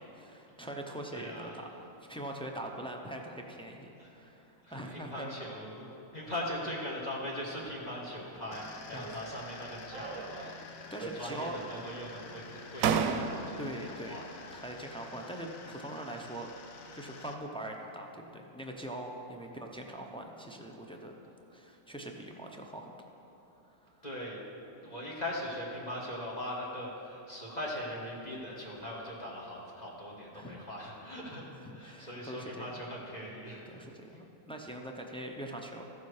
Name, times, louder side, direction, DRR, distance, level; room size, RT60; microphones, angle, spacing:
voice 1, 0.0-5.3 8.9-9.1 10.9-11.6 13.6-14.2 14.5-16.5 16.8-21.2 21.5-22.9 23.8-24.0 30.3-30.6 31.8-32.7 33.7-35.8, right 1 dB, 10° left, 1 dB, 0.3 m, -42 dB
voice 2, 1.1-1.6 4.0-4.1 4.6-14.4 24.0-24.4 24.8-33.7 34.1-34.2, left 1 dB, 30° left, -4 dB, 1.6 m, -40 dB
sound 1, 8.5-17.3, left 4 dB, 80° left, 1.2 m, -49 dB
sound 2, 8.9-9.5 9.9-10.7 11.0-11.7 12.4-12.5 12.8-13.7, right 6 dB, 85° right, 1.0 m, -34 dB
14.0 x 7.2 x 4.8 m, 2.9 s
omnidirectional pair, 1.4 m